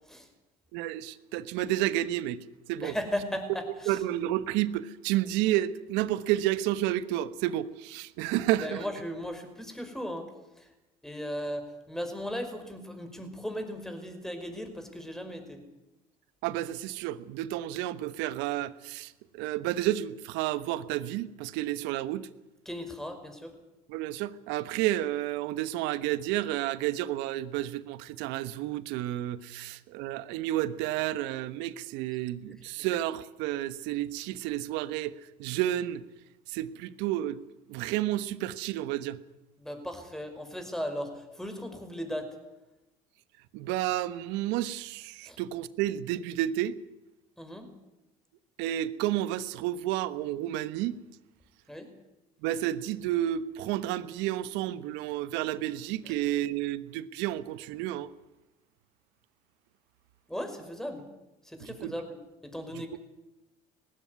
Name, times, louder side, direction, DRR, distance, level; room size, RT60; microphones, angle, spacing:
voice 1, 0.7-2.4 2.7-2.9 3.9-8.8 16.4-22.3 23.9-36.0 36.5-37.4 37.7-39.2 43.5-46.7 48.6-51.0 52.4-58.1 61.6-61.9 62.7-62.8, right 13 dB, 75° right, 15 dB, 1.2 m, -31 dB
voice 2, 2.8-4.0 8.6-10.3 10.6-10.7 11.0-15.6 22.7-23.5 29.5-29.7 39.6-42.3 45.2-45.4 47.4-47.7 51.7-51.9 60.3-61.0 61.5-62.2 62.4-63.0, equal, ahead, 6 dB, 5.5 m, -37 dB
19.0 x 16.0 x 9.6 m, 0.99 s
hypercardioid pair, 75°, 19 cm